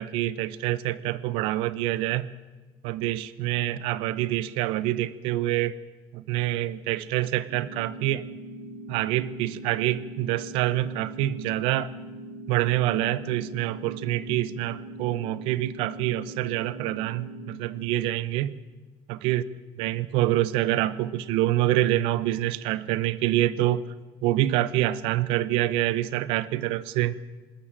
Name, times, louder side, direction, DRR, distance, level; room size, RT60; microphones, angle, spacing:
voice 1, 0.0-2.3 2.8-5.7 6.1-8.3 8.9-11.9 12.5-18.5 19.1-19.4 19.8-23.8 24.2-27.2, right 14 dB, 90° right, 0.9 m, -26 dB
sound 1, 7.5-17.5, right 1 dB, 45° right, 4.5 m, -41 dB
20.0 x 19.5 x 7.5 m
cardioid pair, 155°, 9 cm